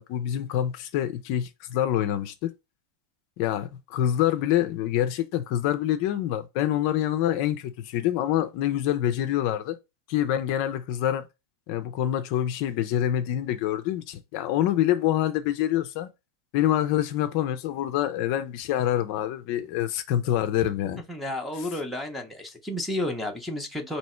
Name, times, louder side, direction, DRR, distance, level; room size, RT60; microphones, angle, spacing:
voice 1, 0.0-2.5 3.4-9.8 10.1-11.2 11.7-16.1 16.5-21.0, left 12 dB, 40° left, 0.4 m, -26 dB
voice 2, 21.1-24.0, left 1 dB, ahead, 0.6 m, -31 dB
3.4 x 2.7 x 4.2 m
supercardioid pair, 175°, 0 cm